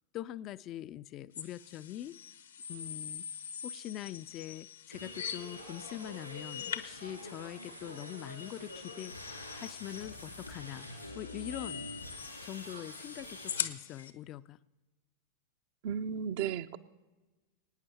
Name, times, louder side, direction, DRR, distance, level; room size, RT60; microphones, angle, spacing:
voice 1, 0.1-2.2 2.7-3.3 3.6-9.1 9.6-11.9 12.4-14.6, left 13 dB, 35° left, 15 dB, 0.4 m, -43 dB
sound 1, 1.3-14.1, left 9 dB, 70° left, 0.8 m, -44 dB
sound 2, 4.9-13.6, left 1 dB, 90° left, 3.0 m, -46 dB
voice 2, 15.8-16.8, right 8 dB, 50° right, 10 dB, 0.6 m, -34 dB
24.5 x 9.5 x 4.3 m, 1.2 s
figure-of-eight pair, 90°, 0 cm